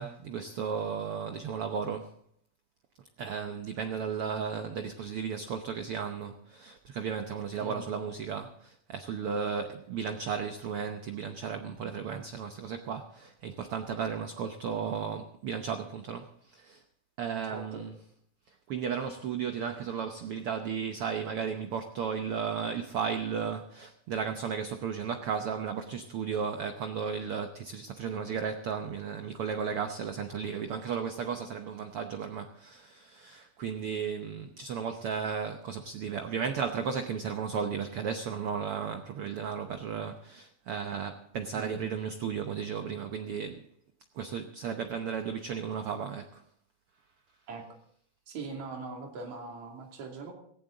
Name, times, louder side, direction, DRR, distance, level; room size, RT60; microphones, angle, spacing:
voice 1, 0.0-2.1 3.2-16.8 17.2-17.9 18.7-43.6 44.2-46.4, right 6 dB, 85° right, 6 dB, 1.2 m, -34 dB
voice 2, 17.5-17.8 41.5-41.8 47.5-47.7 48.3-50.3, right 4 dB, 60° right, 1 dB, 3.9 m, -41 dB
17.5 x 16.0 x 3.9 m, 0.64 s
omnidirectional pair, 3.8 m